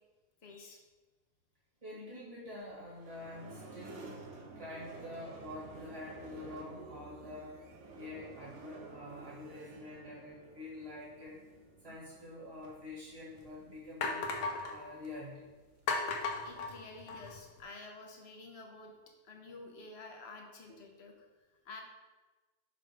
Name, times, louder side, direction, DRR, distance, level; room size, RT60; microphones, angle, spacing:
voice 1, 0.4-0.8 16.4-18.9 19.2-21.8, left 3 dB, 50° left, 2 dB, 0.8 m, -50 dB
voice 2, 1.8-4.2 4.5-7.6 7.9-11.4 11.8-14.3 14.7-15.5, left 2 dB, 20° right, -6 dB, 1.3 m, -46 dB
sound 1, 2.6-17.5, right 3 dB, 55° right, 1.0 m, -53 dB
sound 2, 12.6-12.7 13.4-13.5 14.0-14.8 15.9-17.4, left 3 dB, 80° left, 1.2 m, -35 dB
5.5 x 5.2 x 3.3 m, 1.2 s
omnidirectional pair, 1.8 m